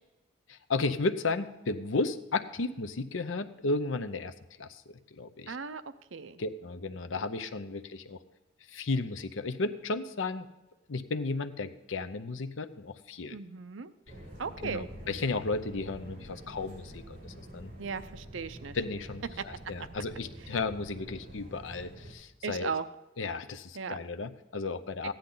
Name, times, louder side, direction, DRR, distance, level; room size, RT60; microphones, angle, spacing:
voice 1, 0.5-5.6 6.4-8.2 8.7-10.5 10.9-13.4 14.6-17.7 18.7-22.7 23.2-25.1, left 3 dB, 85° left, 10 dB, 0.7 m, -34 dB
voice 2, 5.5-5.8 6.1-6.4 13.3-13.9 14.4-14.9 17.8-18.8 19.8-19.9 22.4-22.9 23.7-24.0, right 5 dB, 85° right, 12 dB, 0.6 m, -36 dB
sound 1, 14.1-22.1, right 1 dB, 40° right, 4.3 m, -47 dB
15.0 x 10.0 x 3.9 m, 1.0 s
head